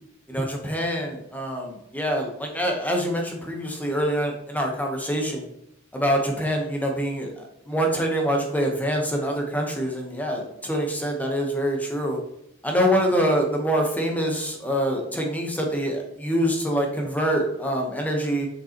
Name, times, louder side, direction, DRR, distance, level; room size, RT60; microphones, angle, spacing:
voice 1, 0.3-5.5 5.9-12.2 12.6-18.5, equal, 5° left, 1 dB, 1.0 m, -25 dB
7.1 x 5.2 x 3.0 m, 0.80 s
head